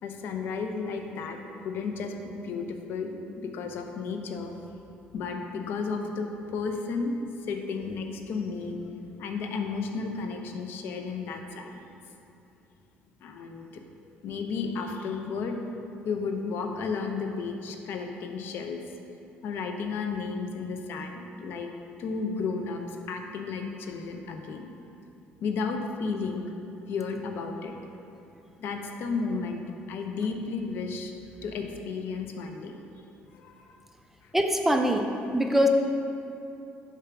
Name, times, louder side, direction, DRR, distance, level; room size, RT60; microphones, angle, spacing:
voice 1, 0.0-4.5 5.1-7.1 7.4-8.8 9.2-11.9 13.2-13.8 14.2-15.6 16.0-18.8 19.4-21.7 22.0-24.7 25.4-26.5 26.9-27.7 28.6-29.6 29.9-31.1 31.4-32.8 33.3-33.7, left 4 dB, 65° left, 4 dB, 0.7 m, -33 dB
voice 2, 34.3-35.7, equal, 5° right, 4 dB, 0.5 m, -23 dB
6.9 x 4.5 x 6.0 m, 2.8 s
cardioid pair, 115°, 4 cm